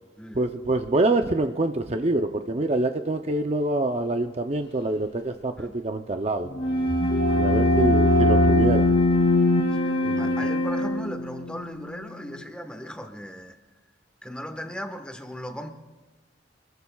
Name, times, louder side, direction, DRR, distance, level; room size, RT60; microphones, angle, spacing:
voice 1, 0.3-6.5 7.4-9.0 10.0-10.4, right 2 dB, 35° right, 0.6 m, -26 dB
sound 1, 6.5-12.1, left 2 dB, 85° left, 1.3 m, -23 dB
Wind instrument woodwind instrument, 6.5-11.3, equal, 30° left, 2.4 m, -26 dB
voice 2, 9.7-13.6 14.2-15.7, equal, 5° left, 1.3 m, -37 dB
27.5 x 20.5 x 2.3 m
head